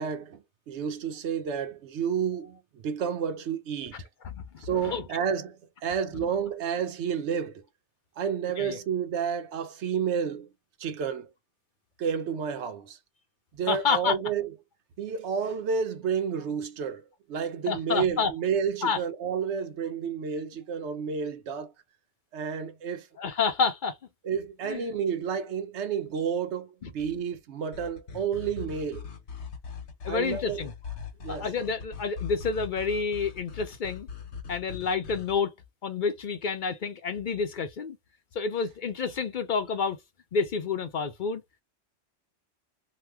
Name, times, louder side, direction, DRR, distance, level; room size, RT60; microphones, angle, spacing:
voice 1, 0.0-4.0 4.6-7.6 8.2-10.5 10.8-11.3 12.0-13.0 13.5-14.5 15.0-17.0 17.3-21.7 22.3-23.1 24.2-29.1 30.1-30.6 31.2-31.5, right 7 dB, 85° right, 1.0 m, -30 dB
voice 2, 13.7-14.1 17.7-18.3 18.8-19.0 23.2-24.0 24.6-24.8 26.8-26.9 30.0-30.7 31.3-34.1 34.5-35.5 35.8-38.0 38.3-40.0 40.3-41.4, left 5 dB, 55° left, 0.6 m, -29 dB
sound 1, 27.7-35.4, left 7 dB, 80° left, 1.1 m, -41 dB
2.8 x 2.2 x 3.4 m
omnidirectional pair, 1.1 m